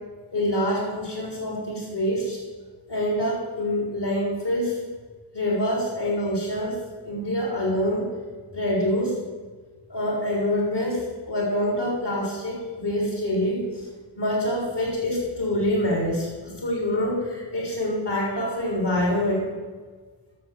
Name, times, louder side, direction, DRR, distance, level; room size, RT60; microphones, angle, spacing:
voice 1, 0.3-2.4 2.9-4.8 5.3-6.8 7.0-8.1 8.5-9.2 9.9-13.9 14.2-19.5, left 1 dB, 60° left, -2 dB, 4.2 m, -26 dB
12.0 x 7.1 x 7.4 m, 1.4 s
cardioid pair, 40°, 47 cm